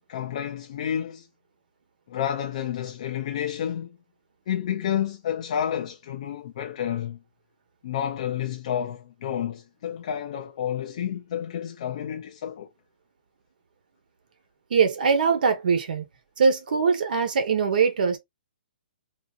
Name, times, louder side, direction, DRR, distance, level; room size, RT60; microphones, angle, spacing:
voice 1, 0.1-1.3 2.1-3.9 4.5-7.2 7.8-12.7, left 9 dB, 40° left, 0.4 m, -30 dB
voice 2, 14.7-16.0 16.4-18.2, right 5 dB, 60° right, 1.1 m, -22 dB
3.6 x 2.7 x 2.4 m
hypercardioid pair, 165°, 5 cm